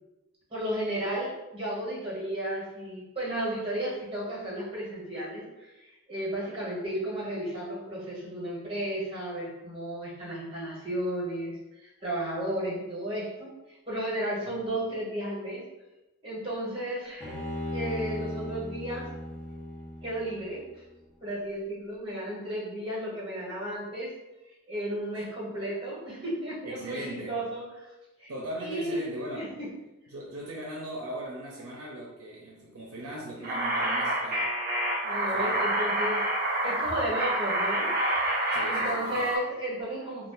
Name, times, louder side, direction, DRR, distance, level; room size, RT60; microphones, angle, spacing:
voice 1, 0.5-5.5 6.1-13.5 13.9-15.6 16.2-17.3 17.7-19.1 20.0-20.6 21.2-24.1 24.7-27.9 28.2-28.3 28.6-29.0 29.3-29.7 33.4-33.5 35.0-37.9 38.6-40.3, right 1 dB, 25° right, -7 dB, 1.3 m, -33 dB
Bowed string instrument, 17.2-20.5, left 1 dB, 5° left, 0.9 m, -36 dB
voice 2, 26.6-27.4 28.3-29.6 30.1-34.5 35.3-35.6 38.5-39.3, right 1 dB, 85° right, -3 dB, 0.6 m, -39 dB
sound 1, 33.4-39.4, right 1 dB, 45° right, 0.6 m, -28 dB
2.5 x 2.4 x 3.8 m, 1.0 s
head